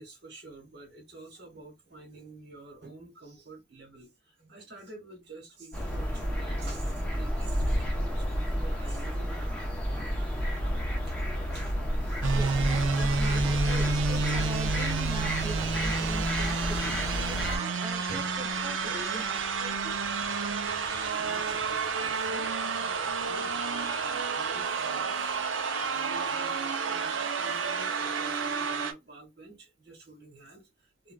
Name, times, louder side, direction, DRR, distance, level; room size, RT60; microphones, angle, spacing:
voice 1, 0.0-12.2 12.6-12.8 13.5-13.6 18.1-18.3 21.1-31.1, right 3 dB, 55° right, 1.5 m, -49 dB
sound 1, 5.7-17.6, equal, 5° left, 0.8 m, -31 dB
sound 2, 12.2-28.9, right 4 dB, 80° right, 0.6 m, -30 dB
voice 2, 12.3-19.9, right 2 dB, 20° right, 0.6 m, -41 dB
3.7 x 2.4 x 2.3 m
head